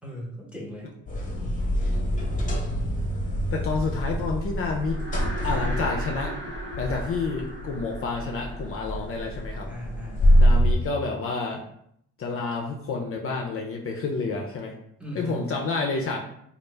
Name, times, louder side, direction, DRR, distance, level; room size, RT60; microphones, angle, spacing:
voice 1, 0.0-0.9 9.7-10.6 15.0-15.4, right 1 dB, 5° right, -3 dB, 1.0 m, -38 dB
sound 1, 1.1-10.7, equal, 25° left, 0.9 m, -25 dB
voice 2, 3.5-5.0 5.4-6.4 6.8-9.7 10.4-11.6 12.2-14.7 15.1-16.2, left 4 dB, 45° left, 1 dB, 0.5 m, -29 dB
sound 2, 4.6-10.0, equal, 40° right, 0.8 m, -39 dB
3.1 x 2.4 x 3.3 m, 0.72 s
cardioid pair, 90°, 30 cm